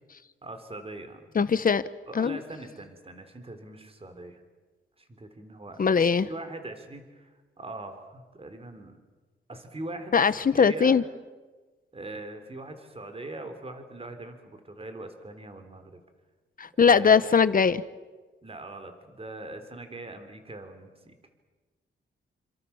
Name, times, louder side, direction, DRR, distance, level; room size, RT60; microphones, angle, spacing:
voice 1, 0.4-1.3 2.1-4.4 5.0-5.8 6.2-7.3 7.6-9.0 9.5-10.1 10.6-11.0 11.9-16.0 16.7-17.4 18.4-21.2, right 2 dB, 30° right, 7 dB, 3.8 m, -41 dB
voice 2, 1.3-1.8 2.1-2.4 5.8-6.3 10.1-11.0 16.6-17.8, left 6 dB, 45° left, 15 dB, 1.1 m, -21 dB
29.0 x 26.5 x 7.2 m, 1.3 s
wide cardioid pair, 110°, 20 cm